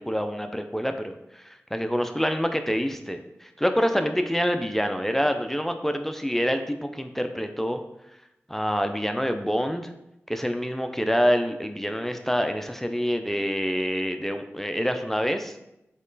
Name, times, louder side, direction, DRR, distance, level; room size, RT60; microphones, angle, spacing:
voice 1, 0.0-7.8 8.5-9.9 10.3-15.6, equal, 5° left, 6 dB, 0.4 m, -26 dB
4.3 x 3.1 x 3.9 m, 0.86 s
cardioid pair, 40°, 5 cm